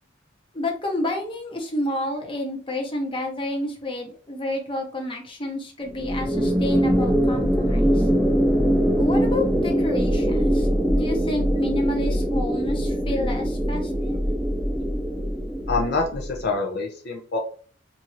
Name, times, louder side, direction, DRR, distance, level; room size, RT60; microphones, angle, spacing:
voice 1, 0.5-8.1 9.0-14.2, left 1 dB, 30° left, 1 dB, 0.8 m, -30 dB
sound 1, 5.9-16.4, equal, 5° right, 0.4 m, -22 dB
voice 2, 15.7-17.4, left 3 dB, 60° left, 1 dB, 0.6 m, -26 dB
3.7 x 2.7 x 3.0 m, 0.41 s
head